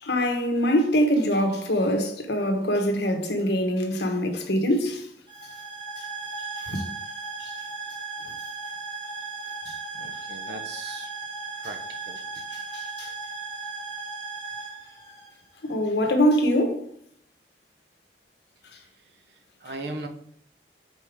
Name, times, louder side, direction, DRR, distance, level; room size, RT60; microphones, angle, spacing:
voice 1, 0.0-5.1 6.7-6.8 7.4-7.5 12.7-13.1 15.6-16.8, equal, 80° left, 1.1 m, -23 dB
sound 1, 5.3-15.8, right 4 dB, 30° right, 2.2 m, -36 dB
voice 2, 9.9-11.1 11.6-12.2 19.6-20.1, right 2 dB, 75° right, 0.9 m, -38 dB
5.4 x 4.3 x 4.9 m
head